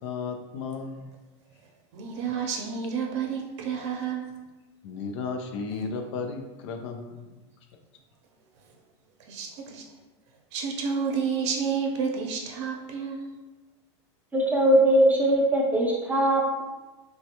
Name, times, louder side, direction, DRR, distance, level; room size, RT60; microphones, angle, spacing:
voice 1, 0.0-1.0 4.8-7.3, left 5 dB, 70° left, 5 dB, 0.5 m, -34 dB
voice 2, 1.9-4.3 9.2-9.8 10.5-13.3, right 6 dB, 70° right, 1 dB, 0.6 m, -30 dB
voice 3, 14.3-16.6, right 1 dB, 10° right, -2 dB, 0.5 m, -21 dB
3.3 x 2.2 x 2.8 m, 1.1 s
supercardioid pair, 120°, 15 cm